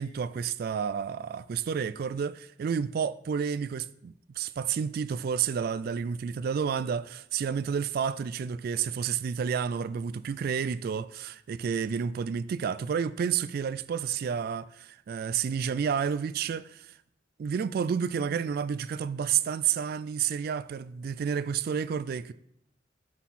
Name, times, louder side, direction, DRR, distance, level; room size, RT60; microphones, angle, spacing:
voice 1, 0.0-16.9 17.4-22.3, right 7 dB, 55° right, 0.3 m, -30 dB
9.4 x 6.3 x 4.1 m
head